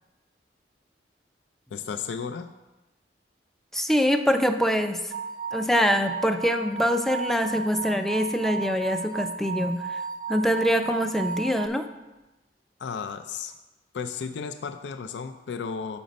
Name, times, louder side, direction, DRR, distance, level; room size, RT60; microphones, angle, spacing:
voice 1, 1.7-2.5 12.8-13.6 13.9-16.0, left 6 dB, 80° left, 8 dB, 0.4 m, -34 dB
voice 2, 3.7-5.1 5.5-10.0 10.3-11.9, equal, ahead, 7 dB, 0.4 m, -24 dB
sound 1, 5.1-11.7, right 5 dB, 50° right, 0.5 m, -34 dB
6.8 x 5.3 x 5.1 m, 1.1 s
head